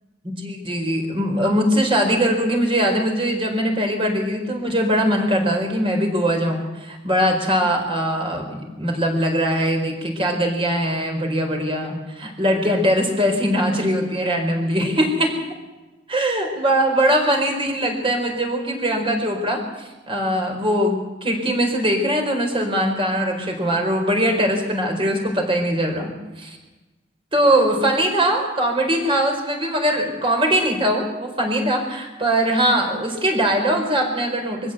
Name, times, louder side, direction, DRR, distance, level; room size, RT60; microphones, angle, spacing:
voice 1, 0.2-15.3 16.1-26.6 27.3-34.7, equal, 30° right, 3 dB, 4.7 m, -21 dB
23.0 x 15.5 x 8.1 m, 1.1 s
head